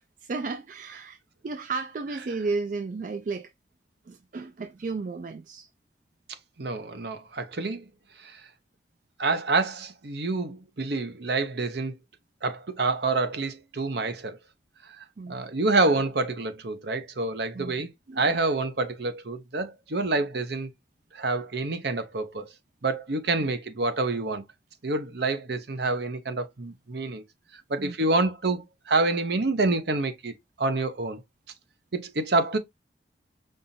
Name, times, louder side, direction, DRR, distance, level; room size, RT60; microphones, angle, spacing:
voice 1, 0.2-1.2 1.4-3.5 4.1-5.7 15.2-15.4 17.5-18.4 23.4-23.5 27.8-28.0, right 4 dB, 45° right, 0.3 m, -33 dB
voice 2, 6.6-7.8 8.2-8.4 9.2-12.0 12.4-14.4 15.0-17.9 18.2-20.7 21.1-22.5 22.8-24.4 24.8-27.2 27.7-31.2 31.9-32.6, right 3 dB, 65° right, 0.8 m, -27 dB
5.5 x 2.5 x 2.7 m
head